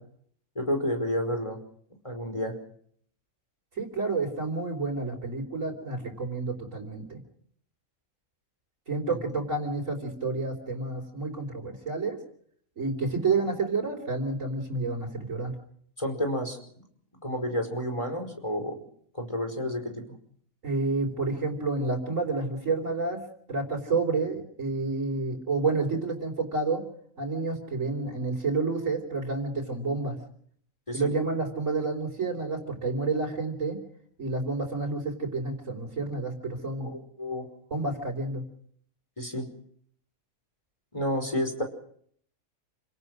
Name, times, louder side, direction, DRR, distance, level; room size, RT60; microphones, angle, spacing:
voice 1, 0.6-1.6 2.0-2.6 9.1-9.2 16.0-16.6 17.2-18.8 19.1-20.0 30.9-31.1 36.9-37.5 39.2-39.5 40.9-41.6, equal, 20° left, 4 dB, 5.1 m, -30 dB
voice 2, 3.8-7.2 8.9-12.2 12.8-15.5 20.6-23.2 23.5-26.8 27.2-30.2 30.9-33.8 34.2-36.9 37.7-38.4, right 3 dB, 65° right, -4 dB, 4.4 m, -29 dB
29.5 x 18.0 x 6.4 m, 0.63 s
omnidirectional pair, 1.4 m